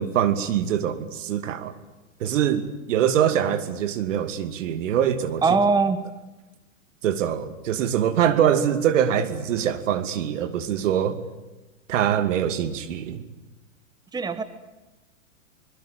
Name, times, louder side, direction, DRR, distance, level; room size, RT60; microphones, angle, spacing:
voice 1, 0.0-1.7 2.2-5.4 7.0-11.2 11.9-13.2, right 9 dB, 65° right, 2.7 m, -23 dB
voice 2, 5.4-6.0 14.1-14.4, right 4 dB, 10° right, 1.2 m, -21 dB
25.5 x 21.5 x 8.9 m
hypercardioid pair, 105°, 40 cm